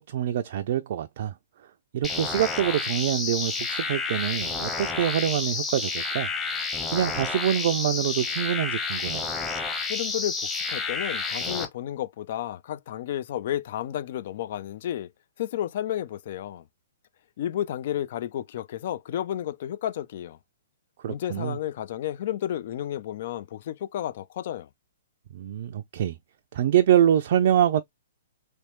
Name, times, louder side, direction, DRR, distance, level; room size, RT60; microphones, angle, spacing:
voice 1, 0.0-1.3 1.9-6.3 6.9-9.2 21.0-21.6 25.3-26.2 26.5-27.8, right 10 dB, 55° right, 0.4 m, -25 dB
sound 1, 2.0-11.7, left 4 dB, 10° left, 0.9 m, -30 dB
voice 2, 9.9-15.1 15.4-16.6 17.4-20.4 21.1-24.7, left 11 dB, 55° left, 0.4 m, -32 dB
3.3 x 3.1 x 2.9 m
hypercardioid pair, 120°, 0 cm